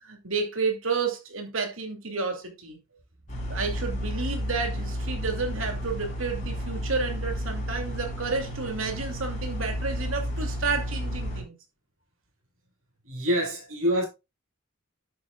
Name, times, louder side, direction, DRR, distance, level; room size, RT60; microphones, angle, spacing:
voice 1, 0.0-2.8 3.5-11.5, right 4 dB, 70° right, 2.7 m, -31 dB
sound 1, 3.3-11.4, equal, 35° left, 5.0 m, -32 dB
voice 2, 13.0-14.0, equal, 85° right, 5.6 m, -26 dB
11.5 x 8.5 x 2.4 m
head